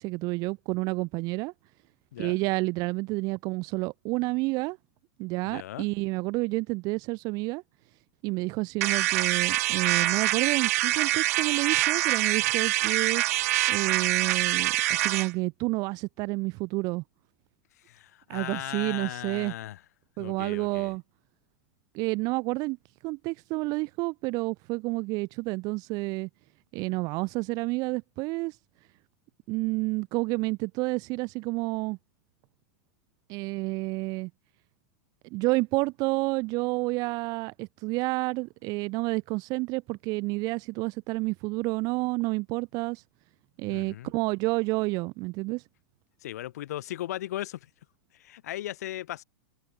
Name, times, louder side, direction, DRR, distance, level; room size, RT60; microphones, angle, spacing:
voice 1, 0.0-1.5 2.2-4.8 5.2-7.6 8.2-13.2 13.7-17.0 18.3-19.5 20.2-21.0 21.9-22.8 23.0-26.3 26.7-28.6 29.5-32.0 33.3-34.3 35.3-43.0 43.6-45.6, right 24 dB, 45° right, 1.5 m, -29 dB
voice 2, 5.4-5.9 17.9-19.8 20.2-20.9 43.7-44.1 46.2-47.7 48.1-49.2, left 13 dB, 75° left, 2.7 m, -37 dB
sound 1, 8.8-15.3, right 17 dB, 65° right, 1.3 m, -25 dB
hypercardioid pair, 125°, 9 cm